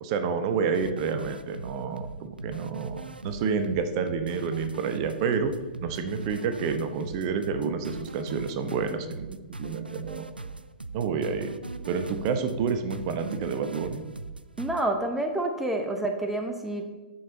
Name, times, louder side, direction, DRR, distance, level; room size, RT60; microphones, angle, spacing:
voice 1, 0.0-5.5 5.8-10.3 10.9-11.5 11.9-14.0, right 5 dB, 40° right, 8 dB, 0.9 m, -29 dB
sound 1, 0.7-14.8, right 3 dB, 85° right, 0.4 m, -40 dB
voice 2, 14.6-16.8, right 1 dB, 5° right, 5 dB, 0.8 m, -28 dB
13.0 x 5.6 x 3.9 m, 1.2 s
figure-of-eight pair, 110°, 5 cm